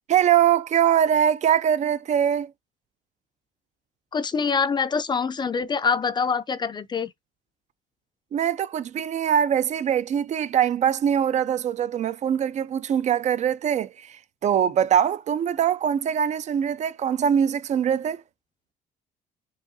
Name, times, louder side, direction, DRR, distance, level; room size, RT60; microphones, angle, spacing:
voice 1, 0.1-2.5 8.3-18.2, right 9 dB, 45° right, 0.4 m, -22 dB
voice 2, 4.1-7.1, left 5 dB, 25° left, 0.4 m, -25 dB
4.8 x 2.8 x 2.6 m
cardioid pair, 110°, 17 cm